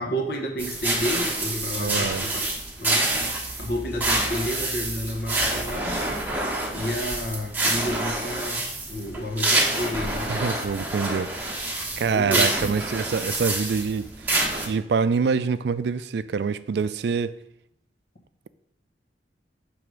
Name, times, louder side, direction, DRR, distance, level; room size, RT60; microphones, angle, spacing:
voice 1, 0.0-2.5 2.8-3.1 3.6-6.0 6.7-10.3 12.1-12.5, equal, 55° left, 3 dB, 1.1 m, -30 dB
sound 1, 0.6-14.7, right 2 dB, 10° right, 0.9 m, -27 dB
voice 2, 1.7-2.2 10.3-11.3 12.0-14.1 14.7-17.4, right 5 dB, 65° right, 15 dB, 0.3 m, -25 dB
6.6 x 3.5 x 6.1 m, 0.74 s
head